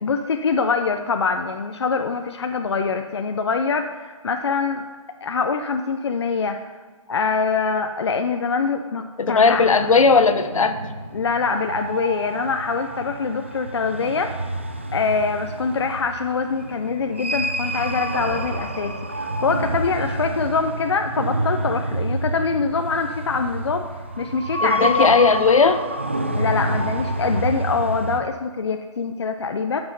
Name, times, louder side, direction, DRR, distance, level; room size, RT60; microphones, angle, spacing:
voice 1, 0.0-4.8 5.2-6.7 7.1-9.6 11.1-14.3 14.9-23.9 24.2-25.2 26.4-29.8, left 5 dB, 50° left, 6 dB, 0.6 m, -24 dB
voice 2, 9.2-10.8 24.6-25.8, left 4 dB, 70° left, 10 dB, 1.0 m, -16 dB
sound 1, 9.5-28.2, right 1 dB, 20° right, 0.3 m, -28 dB
13.0 x 6.2 x 5.3 m, 1.5 s
hypercardioid pair, 175°, 18 cm